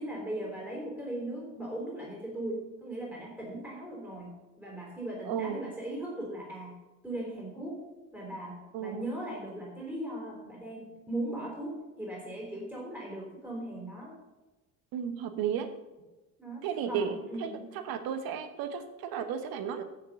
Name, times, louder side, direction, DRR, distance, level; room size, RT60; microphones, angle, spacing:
voice 1, 0.0-6.8 7.0-7.8 8.1-14.1 16.4-17.6, right 1 dB, 5° right, -3 dB, 4.1 m, -38 dB
voice 2, 5.2-5.6 8.7-9.1 14.9-15.7 16.6-17.5 17.9-19.8, right 8 dB, 55° right, 9 dB, 1.2 m, -33 dB
8.6 x 6.9 x 6.6 m, 1.1 s
hypercardioid pair, 60°, 42 cm